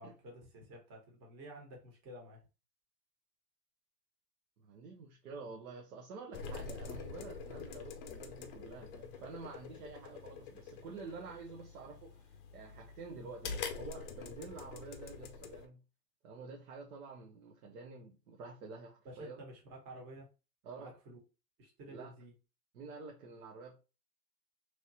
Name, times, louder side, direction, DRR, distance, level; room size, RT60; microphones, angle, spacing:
voice 1, 0.0-2.4 19.0-20.3 20.8-21.2 21.6-22.3, right 1 dB, 30° right, 1.4 m, -51 dB
voice 2, 4.6-15.8 16.2-19.4 20.6-20.9 21.9-22.1 22.7-23.8, right 4 dB, 65° right, 0.9 m, -49 dB
sound 1, 6.3-15.7, left 5 dB, 35° left, 0.6 m, -46 dB
3.1 x 3.1 x 2.7 m
hypercardioid pair, 110°, 50 cm